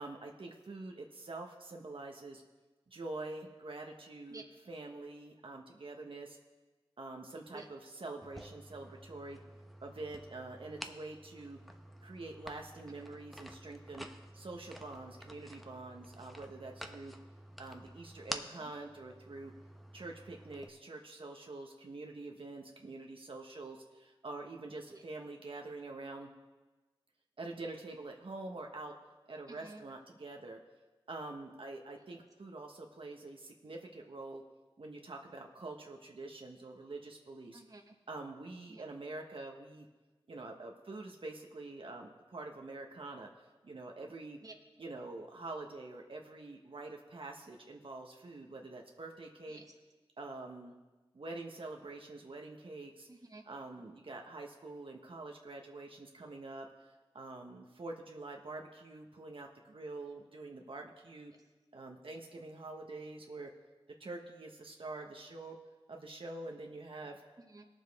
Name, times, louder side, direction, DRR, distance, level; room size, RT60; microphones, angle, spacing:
voice 1, 0.0-2.4 2.9-6.4 7.0-9.4 9.8-11.6 12.0-14.1 14.3-17.1 17.6-19.5 19.9-26.3 27.4-28.9 29.3-30.6 31.1-34.4 34.8-37.6 38.1-39.9 40.3-43.3 43.6-44.4 44.8-49.6 50.2-50.7 51.1-53.1 53.5-61.3 61.7-63.5 64.0-65.6 65.9-67.2, right 2 dB, 70° right, 1 dB, 1.1 m, -46 dB
sound 1, 8.2-20.7, equal, ahead, 0.8 m, -50 dB
voice 2, 18.3-18.7 24.9-25.0 29.5-29.8 37.5-37.9 38.7-38.8 44.4-44.5 49.5-49.7 53.1-53.5 61.3-61.4 67.4-67.6, right 2 dB, 40° right, 3 dB, 1.2 m, -52 dB
19.0 x 7.2 x 3.5 m, 1.2 s
wide cardioid pair, 50°, 10 cm